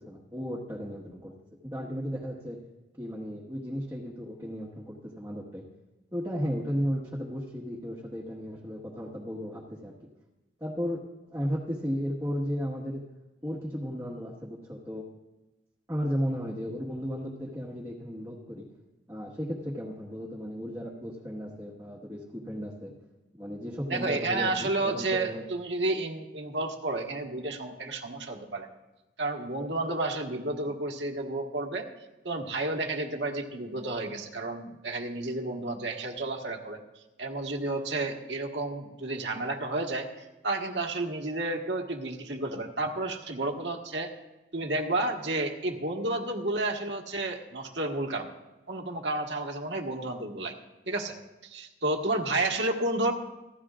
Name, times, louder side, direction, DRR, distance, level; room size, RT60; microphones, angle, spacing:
voice 1, 0.0-1.3 1.6-2.6 3.0-5.6 6.1-9.9 10.6-11.0 11.3-13.0 13.4-15.0 15.9-18.6 19.1-22.9 23.3-25.5, equal, 15° right, -6 dB, 1.5 m, -34 dB
voice 2, 23.9-28.7 29.2-31.9 32.2-36.8 37.2-44.1 44.5-48.3 48.7-50.5 50.9-51.1 51.4-53.1, right 2 dB, 75° right, 2 dB, 1.6 m, -31 dB
29.0 x 11.5 x 2.5 m, 1.1 s
head